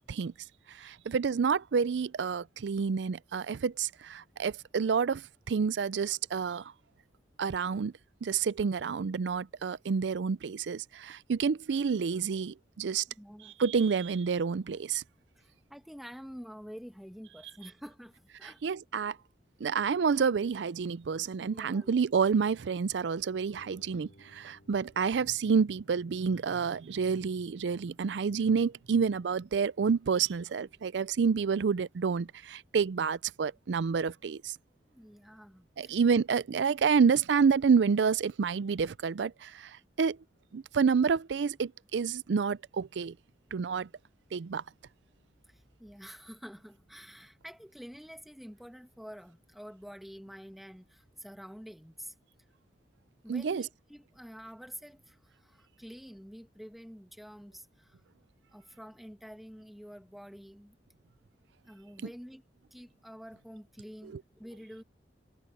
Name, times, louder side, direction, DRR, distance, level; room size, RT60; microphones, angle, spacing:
voice 1, 0.8-6.6 7.4-7.9 8.2-13.0 13.6-15.0 18.6-19.2 19.6-34.6 35.8-39.7 40.0-40.2 40.5-43.1 43.5-43.9 44.3-44.6 53.3-53.6, right 6 dB, 80° right, 0.4 m, -29 dB
voice 2, 13.1-13.5 15.4-18.6 21.5-22.0 34.9-36.0 45.5-52.1 53.2-58.0 58.5-60.8 61.6-62.4 62.7-64.8, equal, ahead, 1.3 m, -48 dB
sound 1, 23.6-33.3, left 1 dB, 70° left, 7.0 m, -65 dB
head